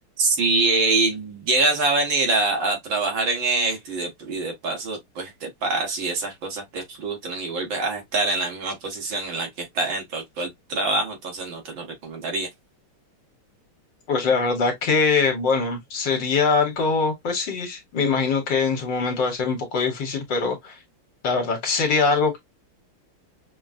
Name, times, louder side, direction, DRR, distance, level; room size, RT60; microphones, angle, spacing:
voice 1, 0.2-12.5, right 3 dB, 65° right, 2.1 m, -25 dB
voice 2, 14.1-20.8 21.2-22.4, left 4 dB, 60° left, 1.8 m, -22 dB
6.0 x 2.2 x 2.4 m
omnidirectional pair, 2.4 m